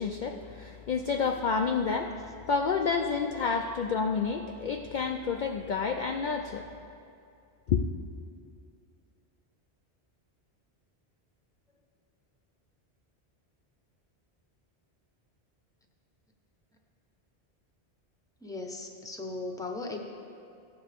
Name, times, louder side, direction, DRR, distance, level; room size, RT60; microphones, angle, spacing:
voice 1, 0.0-6.7 7.7-7.8, left 5 dB, 60° left, 3 dB, 0.5 m, -29 dB
voice 2, 18.4-20.0, left 2 dB, 5° left, 2 dB, 0.7 m, -37 dB
15.5 x 8.9 x 3.5 m, 2.5 s
omnidirectional pair, 1.1 m